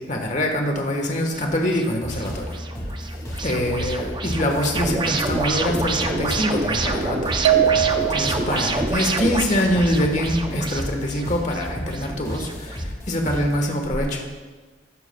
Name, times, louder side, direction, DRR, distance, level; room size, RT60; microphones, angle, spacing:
voice 1, 0.1-2.6 3.4-7.3 8.1-14.2, equal, 40° left, 2 dB, 1.3 m, -24 dB
sound 1, 1.4-12.8, right 3 dB, 25° right, 0.5 m, -28 dB
sound 2, 2.0-13.6, equal, 20° left, 1.9 m, -33 dB
sound 3, 7.4-8.6, right 11 dB, 90° right, 0.3 m, -20 dB
13.0 x 10.5 x 2.3 m, 1.3 s
head